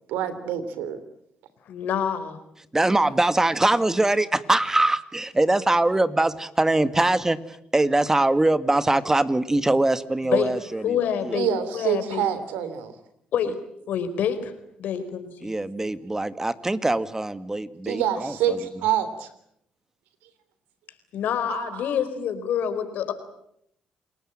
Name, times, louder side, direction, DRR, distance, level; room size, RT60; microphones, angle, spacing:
voice 1, 0.1-1.0 11.3-12.9 17.8-19.3 21.5-21.9, right 9 dB, 90° right, 12 dB, 3.2 m, -26 dB
voice 2, 1.7-2.4 10.2-10.5 10.8-11.5 11.7-12.2 13.3-13.6 13.9-14.5 14.8-15.5 21.1-23.1, left 8 dB, 75° left, 10 dB, 4.3 m, -27 dB
voice 3, 2.7-11.4 15.4-18.6, right 2 dB, 15° right, 13 dB, 1.9 m, -23 dB
28.5 x 20.0 x 8.9 m, 0.74 s
supercardioid pair, 65°, 3 cm